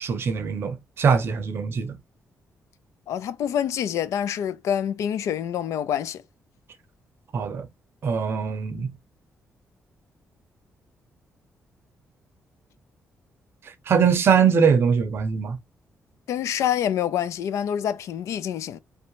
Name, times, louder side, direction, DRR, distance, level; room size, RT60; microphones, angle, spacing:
voice 1, 0.0-2.0 7.3-7.7 8.0-8.9 13.9-15.6, right 6 dB, 55° right, 0.6 m, -22 dB
voice 2, 3.1-6.2 16.3-18.8, left 9 dB, 85° left, 0.3 m, -26 dB
2.7 x 2.1 x 2.8 m
cardioid pair, 130°, 5 cm